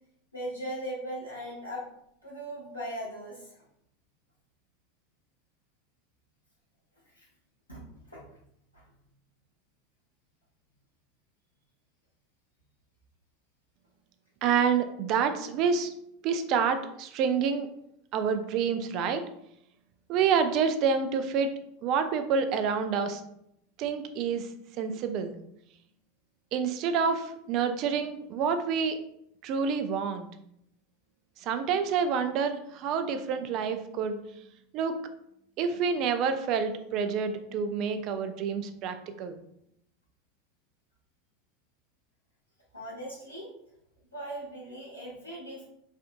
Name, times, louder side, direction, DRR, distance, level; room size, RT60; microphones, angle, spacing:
voice 1, 0.3-1.8 2.2-3.6 7.2-7.3 7.7-7.8 8.1-8.2 42.7-43.5 44.1-45.6, equal, 90° left, -7 dB, 1.2 m, -38 dB
voice 2, 14.4-15.9 16.2-17.7 18.1-19.3 20.1-21.5 21.8-23.2 23.8-24.5 24.8-25.4 26.5-29.0 29.4-30.3 31.4-34.2 34.7-35.0 35.6-39.4, right 6 dB, 45° right, 9 dB, 0.3 m, -28 dB
3.3 x 2.5 x 2.5 m, 0.76 s
figure-of-eight pair, 80°, 0 cm